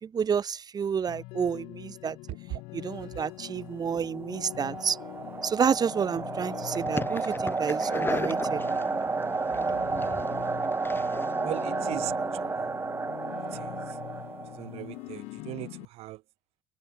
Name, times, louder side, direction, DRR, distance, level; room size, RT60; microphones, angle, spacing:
voice 1, 0.0-2.2 2.7-5.0 5.4-8.6, right 7 dB, 40° right, 2.8 m, -29 dB
sound 1, 1.1-15.9, left 25 dB, 80° left, 2.7 m, -43 dB
sound 2, 4.0-14.9, right 4 dB, 20° right, 1.6 m, -31 dB
sound 3, 6.7-11.9, left 3 dB, 20° left, 2.7 m, -38 dB
voice 2, 11.4-12.1 12.4-12.5 14.6-15.7 16.0-16.2, right 18 dB, 75° right, 1.1 m, -37 dB
supercardioid pair, 85°, 11 cm